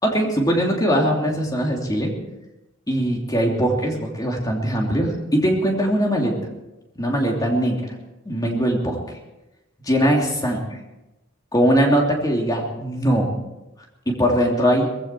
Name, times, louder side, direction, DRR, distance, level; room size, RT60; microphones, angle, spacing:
voice 1, 0.0-2.1 2.9-6.3 6.9-7.9 8.2-9.2 9.8-10.6 11.5-13.4 14.1-14.9, equal, 20° left, 0 dB, 3.1 m, -21 dB
19.5 x 16.0 x 4.6 m, 0.98 s
head